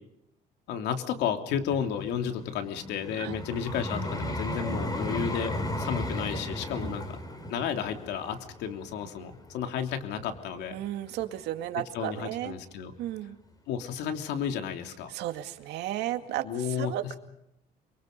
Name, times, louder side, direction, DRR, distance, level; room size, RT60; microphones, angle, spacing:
voice 1, 0.7-7.2 7.5-10.8 11.9-12.9 13.7-15.1 16.4-16.9, left 8 dB, 85° left, 6 dB, 3.1 m, -32 dB
Vehicle, 1.5-10.6 11.2-11.4, left 1 dB, 20° left, 6.2 m, -35 dB
voice 2, 10.7-12.6 13.0-13.4 15.1-17.1, right 13 dB, 85° right, 7 dB, 2.2 m, -34 dB
29.5 x 23.5 x 5.4 m, 0.80 s
cardioid pair, 110°, 17 cm